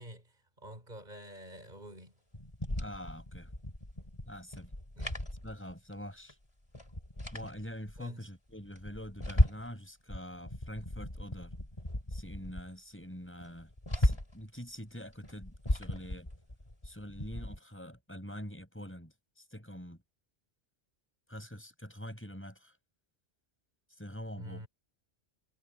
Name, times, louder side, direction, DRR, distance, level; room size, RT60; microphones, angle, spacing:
voice 1, 0.0-2.2 5.0-5.1 8.0-8.3 24.4-24.7, right 1 dB, 45° right, 5.8 m, -48 dB
sound 1, 2.3-6.0 6.3-6.4 6.7-8.0 8.5-9.8 10.1-12.7 13.0-13.1 13.4-14.5 15.1-17.6, left 1 dB, 25° left, 4.0 m, -35 dB
voice 2, 2.8-3.5 4.3-4.7 5.4-6.4 7.3-11.5 12.1-16.3 16.8-19.1 19.5-20.0 21.3-22.7 24.0-24.6, equal, 10° left, 6.9 m, -45 dB
omnidirectional pair, 1.1 m